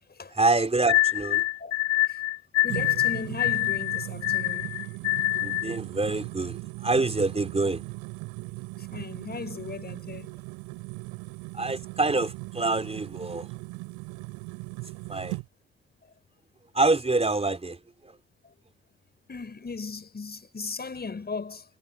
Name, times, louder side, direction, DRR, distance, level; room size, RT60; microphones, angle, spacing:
voice 1, 0.3-1.4 5.4-7.8 11.5-13.5 15.1-15.4 16.7-17.8, right 3 dB, 20° right, 4.1 m, -26 dB
sound 1, 0.9-5.8, left 17 dB, 60° left, 4.5 m, -25 dB
voice 2, 2.6-4.7 8.9-10.3 19.3-21.6, left 4 dB, 30° left, 6.1 m, -37 dB
sound 2, 2.7-15.5, right 28 dB, 70° right, 7.9 m, -38 dB
figure-of-eight pair, 45°, 30 cm